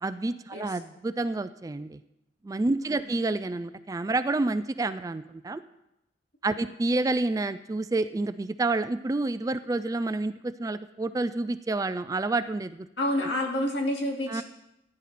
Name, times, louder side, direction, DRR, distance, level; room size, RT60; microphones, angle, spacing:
voice 1, 0.0-2.0 2.4-5.6 6.4-12.9 13.2-13.3 14.3-14.4, right 2 dB, 20° right, 13 dB, 0.3 m, -29 dB
voice 2, 2.8-3.1 13.0-14.4, left 1 dB, 70° left, 0 dB, 2.5 m, -29 dB
15.5 x 9.8 x 4.2 m, 0.86 s
head